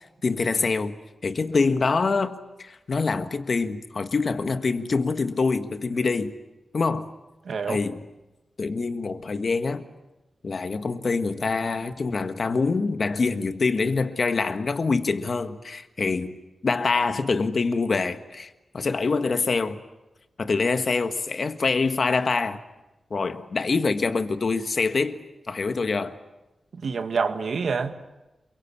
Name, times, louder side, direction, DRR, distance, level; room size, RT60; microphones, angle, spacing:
voice 1, 0.2-1.0 1.2-6.3 6.7-7.1 7.7-8.1 8.6-9.9 10.4-16.4 16.6-19.8 20.4-22.6 23.1-25.2 25.5-26.2, left 4 dB, 50° left, 1.6 m, -25 dB
voice 2, 7.5-7.8 26.7-28.2, right 5 dB, 75° right, 1.8 m, -27 dB
28.5 x 23.5 x 8.7 m
wide cardioid pair, 135°, 0 cm